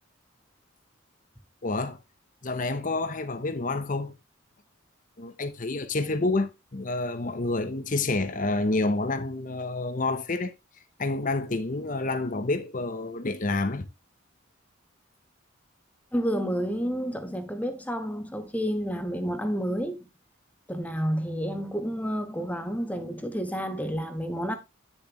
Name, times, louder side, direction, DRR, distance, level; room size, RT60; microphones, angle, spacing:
voice 1, 1.6-2.0 2.4-4.2 5.2-10.5 11.0-13.9, left 2 dB, 40° left, 0.8 m, -28 dB
voice 2, 16.1-20.0 20.7-24.5, equal, 5° left, 1.2 m, -30 dB
10.0 x 7.0 x 3.0 m
head